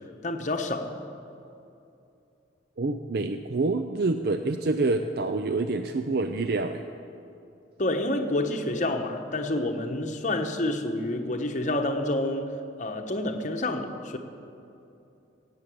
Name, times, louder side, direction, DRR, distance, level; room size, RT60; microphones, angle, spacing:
voice 1, 0.2-0.9 7.8-14.2, left 1 dB, 40° left, 4 dB, 1.1 m, -28 dB
voice 2, 2.8-6.8, right 3 dB, 55° right, 8 dB, 0.5 m, -27 dB
16.5 x 8.6 x 7.7 m, 2.7 s
head